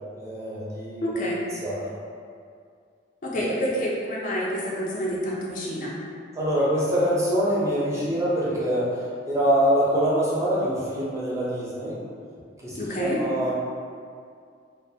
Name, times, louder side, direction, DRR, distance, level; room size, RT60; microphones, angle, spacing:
voice 1, 0.1-1.1 1.6-1.9 3.3-3.5 6.3-12.0 12.6-13.5, equal, 15° right, -8 dB, 0.5 m, -25 dB
voice 2, 1.0-1.4 3.2-6.0 12.8-13.2, equal, 45° left, -4 dB, 0.4 m, -28 dB
2.3 x 2.1 x 2.6 m, 2.3 s
head